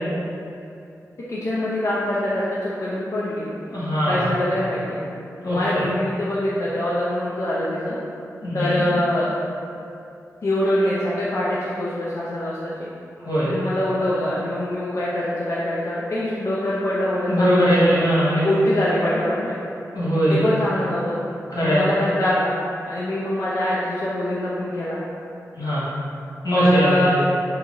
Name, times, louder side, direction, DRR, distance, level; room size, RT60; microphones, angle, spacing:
voice 1, 1.3-3.5 4.0-5.0 5.4-8.0 8.5-9.3 10.4-12.9 13.4-19.6 20.3-21.2 21.6-22.6 22.9-25.0 26.5-27.2, left 1 dB, 50° left, -8 dB, 0.4 m, -24 dB
voice 2, 3.7-4.3 5.4-5.8 8.4-8.8 13.2-13.5 17.3-18.4 19.9-20.4 21.5-21.8 25.5-25.9 26.4-27.1, equal, 85° left, -9 dB, 1.2 m, -20 dB
2.8 x 2.7 x 3.8 m, 2.6 s
wide cardioid pair, 140°, 6 cm